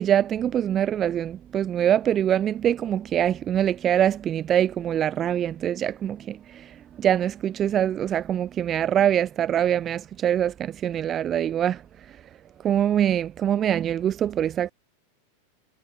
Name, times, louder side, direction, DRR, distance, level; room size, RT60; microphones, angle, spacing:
voice 1, 0.0-12.2 12.6-14.7, right 10 dB, 25° right, 1.0 m, -24 dB
figure-of-eight pair, 90°, 0 cm